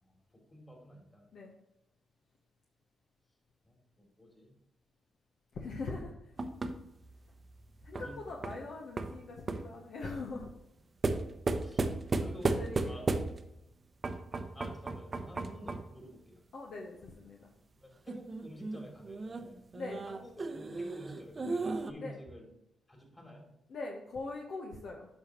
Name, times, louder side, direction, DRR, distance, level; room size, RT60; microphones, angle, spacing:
voice 1, 0.0-1.2 3.6-4.5 7.9-8.7 11.6-11.8 12.2-12.6 12.8-13.0 14.5-16.4 17.8-19.6 20.1-22.5 22.9-23.5, equal, 25° left, 1 dB, 2.7 m, -51 dB
voice 2, 5.5-6.1 7.8-10.5 12.2-13.1 16.5-17.4 19.7-20.0 22.0-22.1 23.7-25.1, left 3 dB, 70° left, 0 dB, 0.9 m, -42 dB
sound 1, 6.4-9.8 11.0-13.6 14.0-16.0 18.1-21.9, right 3 dB, 40° right, 0.7 m, -35 dB
8.6 x 5.5 x 3.0 m, 0.87 s
supercardioid pair, 55°, 0 cm